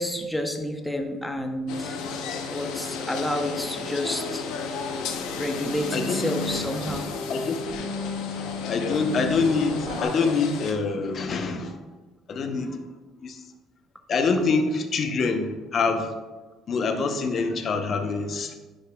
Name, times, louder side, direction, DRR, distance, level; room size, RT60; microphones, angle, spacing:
voice 1, 0.0-2.0 2.5-4.4 5.3-7.1, left 1 dB, 5° left, 4 dB, 0.7 m, -30 dB
sound 1, 1.7-10.7, left 5 dB, 85° left, 0.8 m, -33 dB
sound 2, 5.0-10.0, left 3 dB, 85° right, 1.6 m, -35 dB
voice 2, 7.3-8.4 8.7-11.8 12.3-12.8 13.2-13.4 14.1-16.1 16.7-18.6, left 4 dB, 45° left, 6 dB, 0.7 m, -26 dB
9.8 x 5.2 x 2.3 m, 1.2 s
cardioid pair, 110°, 0 cm